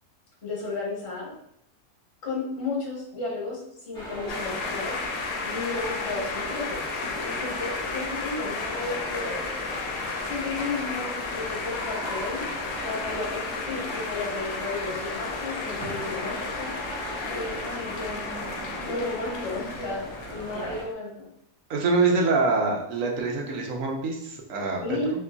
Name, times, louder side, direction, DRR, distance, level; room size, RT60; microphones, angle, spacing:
voice 1, 0.4-1.3 2.2-3.6 3.9-5.0 5.4-6.8 7.2-9.3 10.3-12.4 12.8-16.7 17.2-18.3 18.8-21.3 24.8-25.1, left 3 dB, 45° left, -4 dB, 1.3 m, -33 dB
sound 1, 3.9-20.8, equal, 5° left, 1.0 m, -37 dB
sound 2, 4.3-20.9, left 4 dB, 75° left, 1.0 m, -34 dB
voice 2, 21.7-25.0, right 3 dB, 65° right, 0 dB, 1.0 m, -25 dB
3.8 x 2.9 x 2.3 m, 0.77 s
omnidirectional pair, 1.6 m